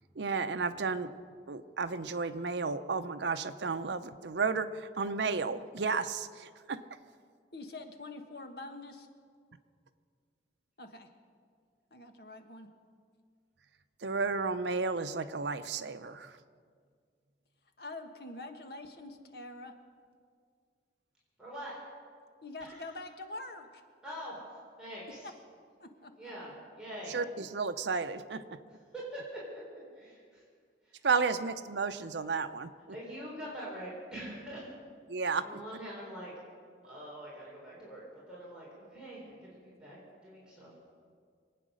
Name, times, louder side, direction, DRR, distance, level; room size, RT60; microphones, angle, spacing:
voice 1, 0.2-1.1 1.5-6.8 14.0-16.3 27.1-28.6 31.0-33.0 35.1-35.6, right 4 dB, 80° right, 10 dB, 0.7 m, -33 dB
voice 2, 7.5-9.1 10.8-11.1 11.9-12.7 17.8-19.8 22.4-23.8 25.0-25.3 25.8-26.3, left 2 dB, 60° left, 5 dB, 1.3 m, -45 dB
voice 3, 21.4-21.7 22.6-22.8 24.0-24.3 24.8-25.2 26.2-27.1 28.9-29.2 30.0-30.4 31.0-31.1 32.9-34.6 35.4-36.3 36.8-40.0 40.2-40.7, equal, 5° right, -7 dB, 3.7 m, -44 dB
24.0 x 9.1 x 6.4 m, 2.1 s
head